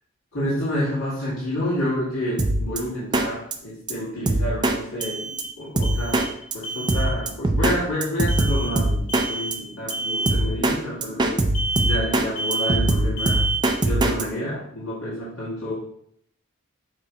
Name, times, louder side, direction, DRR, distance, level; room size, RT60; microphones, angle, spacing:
voice 1, 0.3-6.3 6.5-11.4 11.8-13.4 13.8-15.7, equal, 75° left, -10 dB, 2.2 m, -29 dB
sound 1, 1.7-1.8 5.0-6.4 6.6-7.1 8.3-8.8 9.1-9.6 9.9-10.4 11.5-12.1 12.4-12.9 13.2-13.7, right 2 dB, 25° left, 1.9 m, -29 dB
Drum kit, 2.4-2.8 3.1-3.3 3.5-3.6 3.9-4.0 4.3-4.8 5.0-5.1 5.4-5.5 5.8-6.3 6.5-6.6 6.9-7.8 8.0-9.3 9.5-9.6 9.9-10.0 10.3-10.8 11.0-12.3 12.5-14.2, right 2 dB, 20° right, 0.5 m, -21 dB
7.1 x 3.0 x 5.0 m, 0.70 s
head